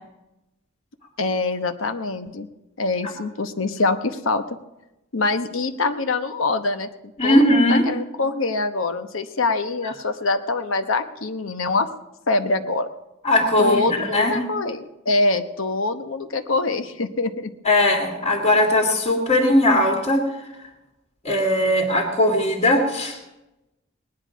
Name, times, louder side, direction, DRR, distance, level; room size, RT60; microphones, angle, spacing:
voice 1, 1.2-2.5 2.8-4.4 5.1-6.9 7.2-11.9 12.3-12.9 13.6-17.5, left 3 dB, 80° left, 8 dB, 1.0 m, -24 dB
voice 2, 7.2-7.9 13.2-14.3 17.6-20.2 21.2-23.2, left 1 dB, 35° left, 0 dB, 2.1 m, -19 dB
19.5 x 10.5 x 5.0 m, 0.97 s
head